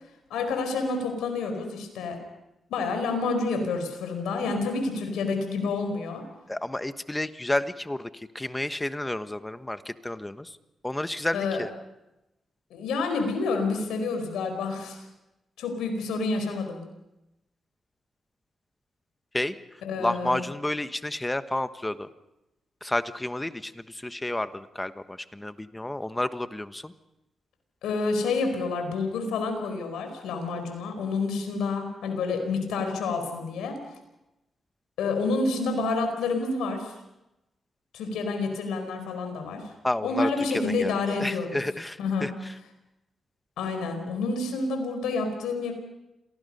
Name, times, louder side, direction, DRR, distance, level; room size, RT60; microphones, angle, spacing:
voice 1, 0.3-2.2 2.7-6.2 11.3-11.6 12.7-15.0 15.6-16.8 19.8-20.4 27.8-33.8 35.0-36.9 37.9-39.6 40.0-41.6 42.0-42.3 43.6-45.7, left 3 dB, 90° left, 6 dB, 4.7 m, -28 dB
voice 2, 6.5-10.6 10.8-11.7 19.3-19.6 20.0-22.1 22.8-26.9 39.8-42.5, left 1 dB, 15° left, 11 dB, 1.3 m, -31 dB
27.5 x 18.5 x 5.5 m, 0.92 s
supercardioid pair, 55°, 0 cm